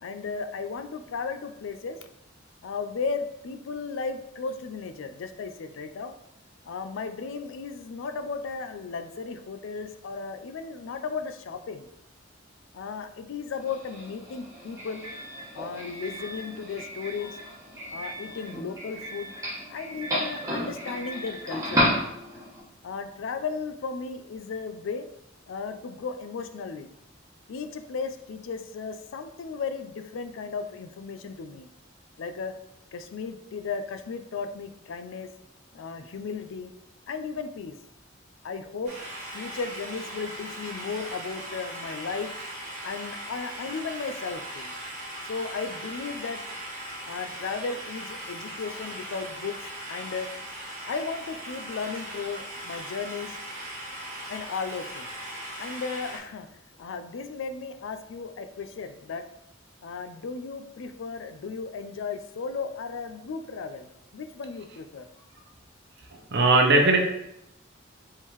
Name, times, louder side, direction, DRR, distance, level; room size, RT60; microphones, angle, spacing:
voice 1, 0.0-2.0 2.6-6.1 6.6-11.9 12.7-15.1 15.5-17.4 17.9-19.3 19.7-21.9 22.8-25.1 25.5-26.9 27.5-31.7 32.2-32.5 32.9-35.3 35.7-36.7 37.1-37.7 38.4-38.9 39.3-42.3 42.8-44.7 45.2-46.4 47.1-49.6 49.9-50.3 50.9-53.4 54.3-55.1 55.6-56.5 56.8-59.2 59.8-65.1, left 5 dB, 75° left, 8 dB, 0.4 m, -35 dB
Doorbell, 13.6-22.6, equal, 15° right, 1.2 m, -33 dB
sound 1, 38.8-56.2, right 1 dB, 35° right, 1.3 m, -39 dB
voice 2, 66.1-67.0, right 2 dB, 60° right, 3 dB, 0.7 m, -19 dB
4.4 x 3.6 x 3.0 m, 0.82 s
head